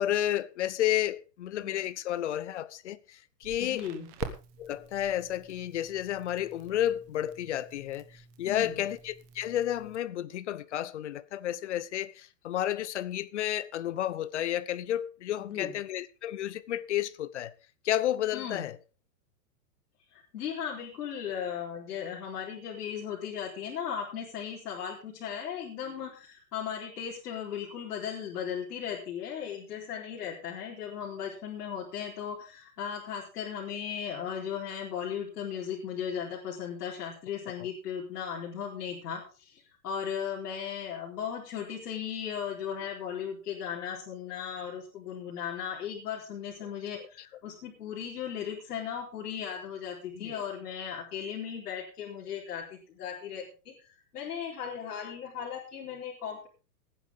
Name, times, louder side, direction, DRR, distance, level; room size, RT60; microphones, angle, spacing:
voice 1, 0.0-3.8 4.6-17.5 17.8-18.8 50.1-50.4, left 12 dB, 45° left, 0.7 m, -31 dB
Crackle, 3.4-10.0, right 9 dB, 20° right, 1.1 m, -47 dB
voice 2, 3.6-4.1 8.5-8.8 15.4-15.8 18.3-18.7 20.1-56.5, left 8 dB, 65° left, 4.3 m, -37 dB
18.5 x 10.0 x 3.6 m
hypercardioid pair, 170°, 50 cm